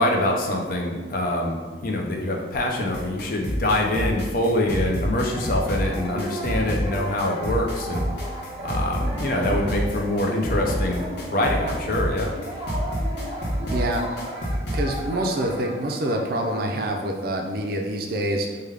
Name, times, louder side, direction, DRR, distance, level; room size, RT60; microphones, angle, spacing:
voice 1, 0.0-1.6 1.8-8.0 8.6-12.3, left 1 dB, 45° left, 1 dB, 0.4 m, -25 dB
sound 1, 2.9-15.0, equal, 65° left, 0.8 m, -29 dB
sound 2, 5.1-16.6, right 1 dB, 35° right, 0.8 m, -36 dB
voice 2, 13.7-14.0 14.7-18.6, right 1 dB, 50° right, 2 dB, 0.4 m, -26 dB
3.3 x 2.2 x 3.4 m, 1.4 s
head